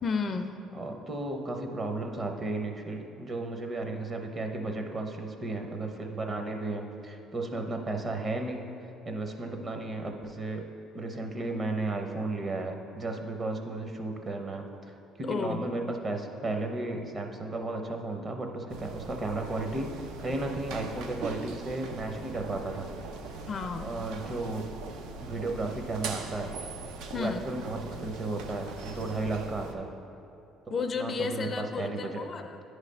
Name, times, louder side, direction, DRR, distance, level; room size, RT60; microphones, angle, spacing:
voice 1, 0.0-0.6 15.2-15.7 23.5-23.9 27.1-27.5 30.7-32.6, left 5 dB, 35° left, 6 dB, 0.4 m, -32 dB
voice 2, 0.7-8.6 9.1-10.6 10.9-14.6 15.2-19.9 20.2-22.9 23.8-24.7 25.2-26.6 27.1-29.9 30.7-31.5 31.8-32.1, right 2 dB, 30° right, 3 dB, 0.7 m, -34 dB
sound 1, 18.7-29.7, right 4 dB, 85° right, 0.5 m, -41 dB
9.6 x 3.2 x 5.3 m, 2.7 s
cardioid pair, 110°, 0 cm